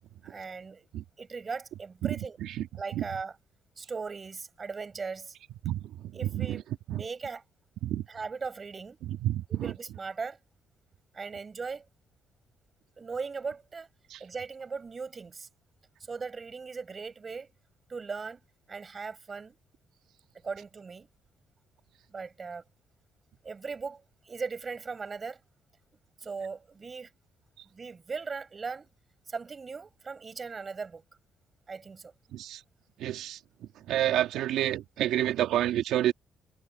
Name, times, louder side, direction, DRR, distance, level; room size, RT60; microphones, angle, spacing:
voice 1, 0.2-0.8 1.2-2.4 2.7-3.4 3.8-5.4 6.1-6.6 6.9-7.4 8.1-9.0 9.5-10.4 11.1-11.9 13.0-13.9 14.2-15.5 16.0-17.5 17.9-18.4 18.7-19.6 20.4-21.1 22.1-22.6 23.4-25.4 26.2-27.1 27.7-28.9 29.3-31.0 31.7-32.1, right 5 dB, 25° right, 7.1 m, -38 dB
voice 2, 6.2-6.6 6.9-7.0 7.8-8.0 9.2-9.7 14.1-14.2 32.3-32.6 33.0-33.4 33.9-36.1, right 12 dB, 80° right, 2.9 m, -28 dB
cardioid pair, 155°, 0 cm